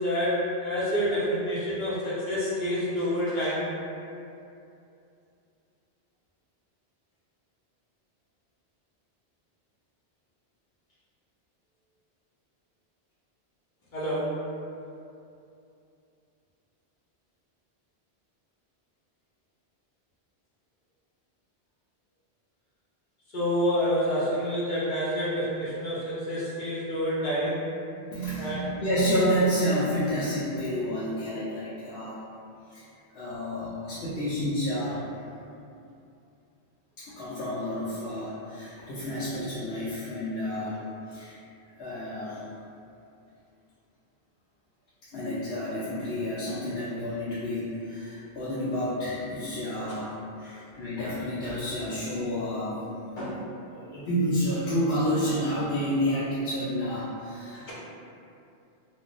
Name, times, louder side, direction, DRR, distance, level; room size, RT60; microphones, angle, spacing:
voice 1, 0.0-3.7 13.9-14.3 23.3-27.6 28.4-28.6 53.2-53.4, equal, 55° left, -8 dB, 0.7 m, -28 dB
voice 2, 28.1-32.2 32.7-32.8 33.1-35.0 37.0-40.8 41.1-41.4 41.7-42.4 45.1-50.1 50.4-52.9 53.7-57.7, equal, 90° left, -10 dB, 0.9 m, -29 dB
2.3 x 2.1 x 3.8 m, 2.6 s
omnidirectional pair, 1.1 m